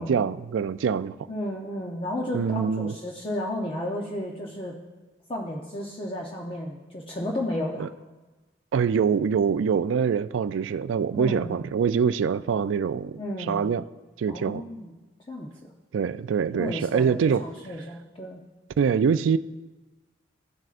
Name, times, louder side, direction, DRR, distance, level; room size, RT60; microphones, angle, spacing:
voice 1, 0.0-1.2 2.3-2.9 7.8-7.9 8.7-13.2 13.5-13.8 14.2-14.6 15.9-17.4 18.8-19.4, right 6 dB, 75° right, 0.3 m, -24 dB
voice 2, 1.3-4.8 5.3-7.8 11.2-11.5 13.2-13.6 14.3-14.9 15.3-15.5 16.5-18.4, left 1 dB, 30° left, 0.7 m, -33 dB
15.5 x 7.6 x 2.5 m
head